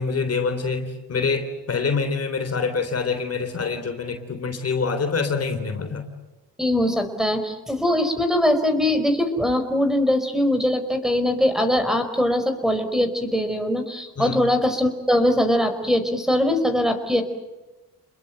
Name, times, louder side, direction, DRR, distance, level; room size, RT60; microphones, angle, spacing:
voice 1, 0.0-6.1 14.2-14.4, left 4 dB, 40° left, 7 dB, 3.4 m, -26 dB
voice 2, 6.6-17.2, left 1 dB, ahead, 8 dB, 4.8 m, -21 dB
29.5 x 21.5 x 8.1 m, 1.1 s
cardioid pair, 95°, 37 cm